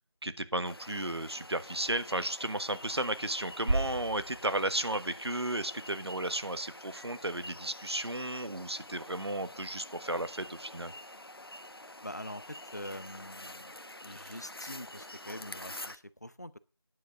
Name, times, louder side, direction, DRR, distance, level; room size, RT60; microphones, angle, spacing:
voice 1, 0.2-10.9, right 1 dB, 75° right, 12 dB, 1.3 m, -34 dB
sound 1, 0.6-16.0, left 1 dB, 60° left, 1.1 m, -47 dB
sound 2, 3.7-5.8, right 2 dB, 55° right, 0.6 m, -35 dB
voice 2, 12.0-13.7 14.0-16.6, left 1 dB, 40° left, 16 dB, 0.6 m, -44 dB
10.5 x 7.3 x 6.6 m, 0.34 s
figure-of-eight pair, 175°, 14 cm